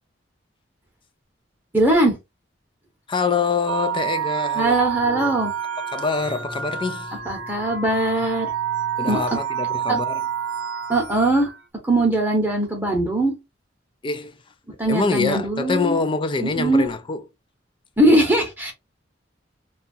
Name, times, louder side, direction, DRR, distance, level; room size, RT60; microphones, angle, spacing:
voice 1, 1.7-2.2 4.5-5.5 7.3-8.5 9.1-9.4 9.9-10.0 10.9-11.5 11.8-13.3 14.8-16.0 16.4-16.9 18.0-18.7, right 1 dB, 10° right, 0.8 m, -20 dB
voice 2, 3.1-5.4 5.9-7.2 9.0-10.2 14.0-14.4 14.9-17.2, left 4 dB, 25° left, 0.4 m, -25 dB
sound 1, 3.7-11.6, right 8 dB, 80° right, 0.7 m, -28 dB
2.7 x 2.4 x 2.6 m
head